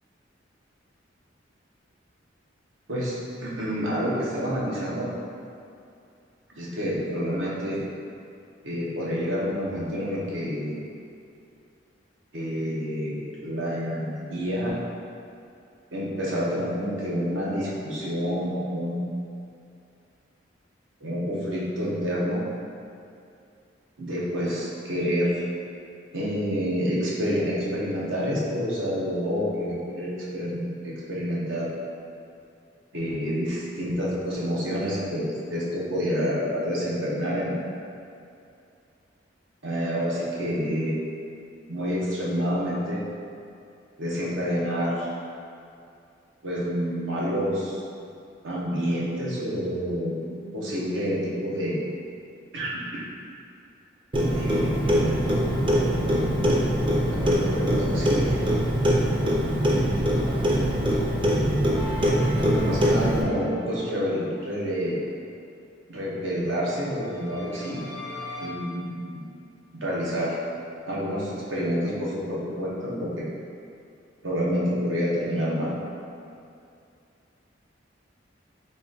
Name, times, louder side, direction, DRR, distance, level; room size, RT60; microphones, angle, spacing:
voice 1, 3.4-5.1 6.5-7.8 8.6-10.8 12.3-14.8 15.9-19.1 21.0-22.4 24.0-25.4 26.1-31.7 32.9-37.5 39.6-40.9 41.7-43.0 44.0-45.1 46.4-47.8 48.4-51.8 52.5-53.0 54.2-55.2 57.2-58.4 62.5-65.0 65.9-67.8 68.4-69.2 69.8-70.3 70.9-73.2 74.2-75.7, equal, 90° right, -6 dB, 0.9 m, -28 dB
Clock, 54.1-63.2, equal, 25° right, 0.4 m, -23 dB
sound 1, 61.7-64.4 66.7-68.5, left 2 dB, 65° right, 1.2 m, -40 dB
3.8 x 2.4 x 3.9 m, 2.5 s
head